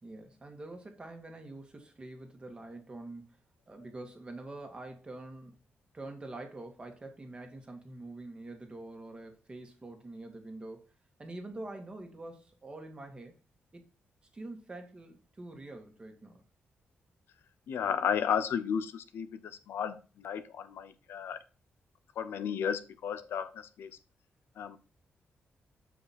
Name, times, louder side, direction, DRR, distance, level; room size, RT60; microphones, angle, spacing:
voice 1, 0.0-3.4 3.7-5.6 5.9-10.9 11.2-13.3 13.7-13.9 14.3-16.4, right 2 dB, 25° right, 1.6 m, -45 dB
voice 2, 17.7-21.4 22.2-23.9 24.6-24.8, left 8 dB, 85° left, 0.6 m, -33 dB
6.7 x 5.0 x 4.2 m
cardioid pair, 110°, 4 cm